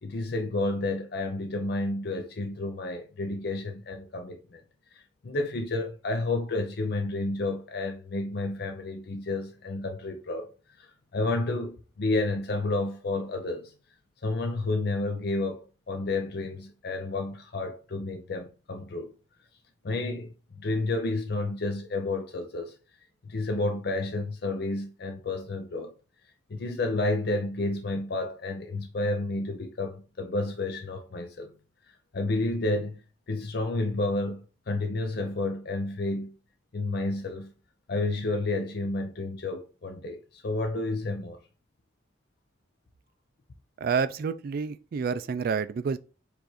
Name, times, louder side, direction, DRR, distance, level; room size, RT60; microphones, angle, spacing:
voice 1, 0.0-4.6 4.9-10.5 10.8-13.7 14.2-19.1 19.8-22.7 23.2-25.9 26.5-31.5 31.9-36.3 36.7-37.5 37.9-41.4, left 2 dB, 60° left, 0.5 m, -31 dB
voice 2, 43.8-46.0, right 5 dB, 50° right, 0.3 m, -28 dB
4.7 x 2.5 x 4.1 m
head